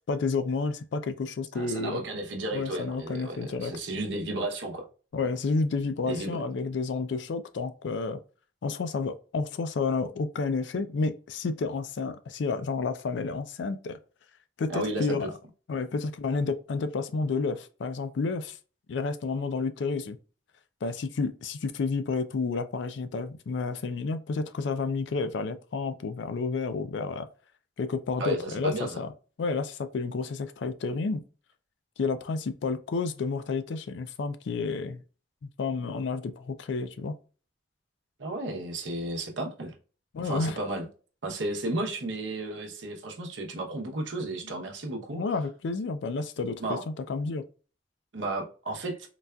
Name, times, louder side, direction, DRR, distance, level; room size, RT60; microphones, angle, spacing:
voice 1, 0.1-2.0 2.5-3.7 5.1-8.2 8.6-14.0 14.6-15.3 15.7-18.6 18.9-20.2 20.8-27.3 27.8-29.1 29.4-31.2 32.0-35.0 35.6-37.2 40.1-40.6 45.1-47.4, left 4 dB, 75° left, 0.4 m, -30 dB
voice 2, 1.5-4.9 6.0-6.4 14.7-15.3 28.2-29.0 38.2-39.7 40.2-40.9 41.2-45.2 46.6-46.8 48.1-48.9, right 1 dB, 80° right, 0.8 m, -33 dB
3.9 x 2.3 x 2.2 m
head